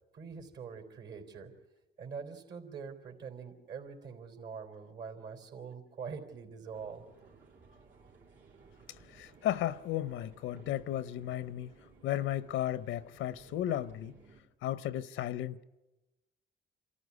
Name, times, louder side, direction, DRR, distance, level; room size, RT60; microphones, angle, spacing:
voice 1, 0.1-1.5 2.0-7.1, right 6 dB, 65° right, 3.8 m, -44 dB
sound 1, 6.7-14.4, right 4 dB, 80° right, 3.9 m, -58 dB
voice 2, 9.1-11.7 12.0-14.2 14.6-15.6, left 12 dB, 90° left, 0.7 m, -34 dB
27.0 x 14.0 x 9.6 m
cardioid pair, 90°, 20 cm